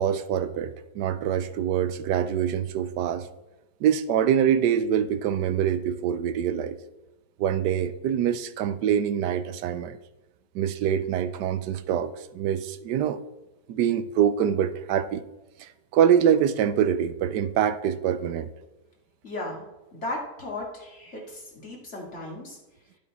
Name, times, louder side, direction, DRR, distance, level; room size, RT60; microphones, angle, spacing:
voice 1, 0.0-3.3 3.8-6.8 7.4-10.0 10.5-12.1 12.3-13.2 13.7-15.2 15.6-18.5, right 9 dB, 85° right, 13 dB, 1.2 m, -24 dB
voice 2, 19.2-19.7 19.9-22.6, left 2 dB, 40° left, -2 dB, 2.7 m, -36 dB
11.5 x 8.3 x 4.3 m, 1.0 s
omnidirectional pair, 1.8 m